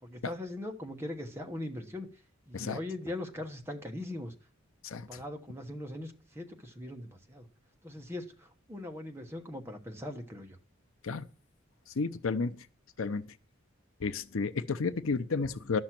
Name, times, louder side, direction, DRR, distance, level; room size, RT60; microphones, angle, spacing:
voice 1, 0.0-2.1 2.5-4.3 4.9-7.5 7.8-10.6, left 1 dB, 10° right, 1.1 m, -40 dB
voice 2, 12.0-12.6 13.0-13.2 14.0-15.8, left 4 dB, 75° left, 0.7 m, -31 dB
11.5 x 6.3 x 5.9 m
head